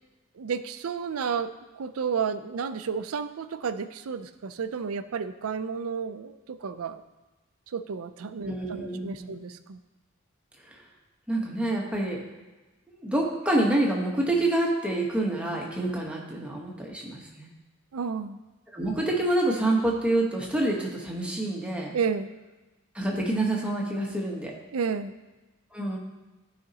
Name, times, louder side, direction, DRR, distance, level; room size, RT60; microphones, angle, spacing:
voice 1, 0.4-7.0 7.7-9.8 17.9-18.4 21.9-22.3 24.7-25.1, right 6 dB, 80° right, 11 dB, 0.5 m, -31 dB
voice 2, 8.4-9.4 10.6-10.8 11.3-12.2 12.9-17.5 18.7-21.9 22.9-24.5 25.7-26.0, right 1 dB, 5° right, -2 dB, 1.1 m, -27 dB
13.5 x 5.0 x 2.9 m, 1.2 s
head